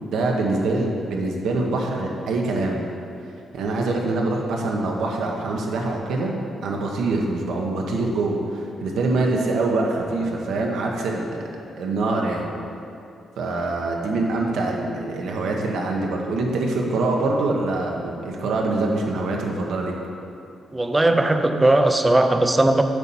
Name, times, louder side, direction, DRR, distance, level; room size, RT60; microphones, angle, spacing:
voice 1, 0.1-2.9 3.5-6.3 6.6-12.5 13.4-19.9, right 2 dB, 80° right, 0 dB, 1.1 m, -24 dB
voice 2, 20.7-22.8, right 2 dB, 15° right, 7 dB, 0.5 m, -18 dB
8.1 x 4.3 x 7.1 m, 2.6 s
cardioid pair, 150°, 0 cm